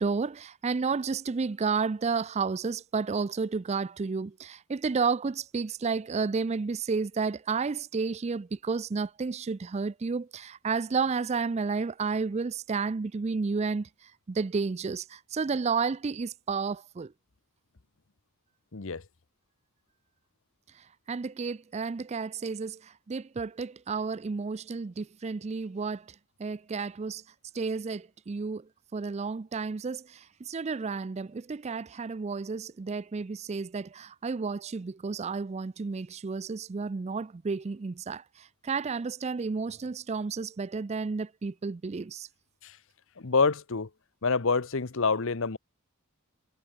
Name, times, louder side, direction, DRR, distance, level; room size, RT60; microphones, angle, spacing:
voice 1, 0.0-13.9 14.3-17.1 21.1-26.0 26.4-27.2 27.5-28.6 28.9-42.3, right 4 dB, 30° right, 0.4 m, -31 dB
voice 2, 18.7-19.0 42.6-42.8 43.2-43.9 44.2-45.6, left 4 dB, 60° left, 0.9 m, -27 dB
head